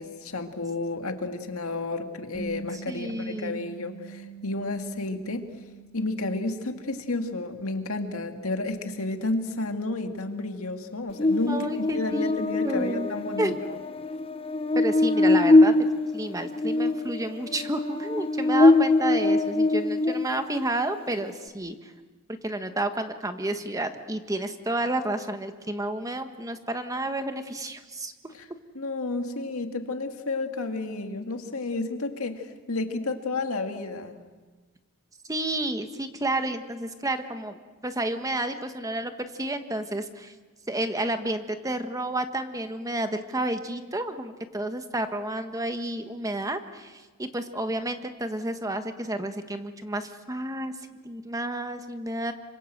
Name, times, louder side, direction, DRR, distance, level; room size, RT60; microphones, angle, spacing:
voice 1, 0.0-5.5 5.9-13.8 28.3-28.5 28.7-34.2, left 2 dB, 75° left, 5 dB, 2.1 m, -31 dB
Bass guitar, 2.3-8.6, right 5 dB, 30° right, 7.5 m, -45 dB
voice 2, 2.7-3.6 11.5-13.1 13.4-13.7 14.7-21.9 22.4-28.3 35.3-37.6 37.8-40.3 40.7-50.8 51.0-52.3, right 1 dB, 15° right, 8 dB, 1.3 m, -31 dB
Buzz, 11.2-20.6, left 2 dB, 25° left, 0.8 m, -23 dB
27.0 x 25.0 x 7.9 m, 1.3 s
head